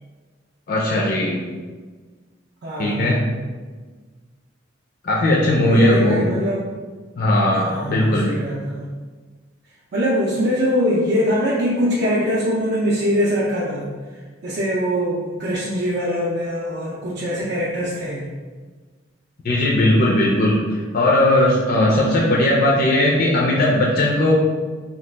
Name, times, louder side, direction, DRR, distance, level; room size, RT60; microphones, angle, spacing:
voice 1, 0.7-1.4 2.8-3.3 5.0-6.3 7.2-8.3 19.4-24.3, left 1 dB, 45° left, -3 dB, 0.4 m, -18 dB
voice 2, 2.6-3.2 5.6-6.7 7.5-8.9 9.9-13.9 14.4-18.3 21.8-22.3, equal, 50° right, -6 dB, 0.4 m, -23 dB
2.9 x 2.3 x 3.3 m, 1.4 s
head